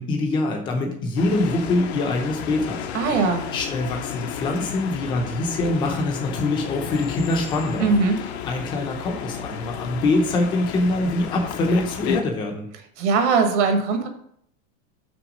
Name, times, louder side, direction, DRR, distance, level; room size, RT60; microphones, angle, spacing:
voice 1, 0.0-2.9 3.1-7.9 8.2-12.7, left 2 dB, 10° left, 2 dB, 0.6 m, -24 dB
sound 1, 1.2-12.2, left 8 dB, 50° left, 0.7 m, -32 dB
voice 2, 2.9-3.4 7.8-8.2 13.0-14.1, right 4 dB, 55° right, 5 dB, 1.4 m, -20 dB
6.0 x 4.5 x 6.2 m, 0.69 s
supercardioid pair, 175°, 41 cm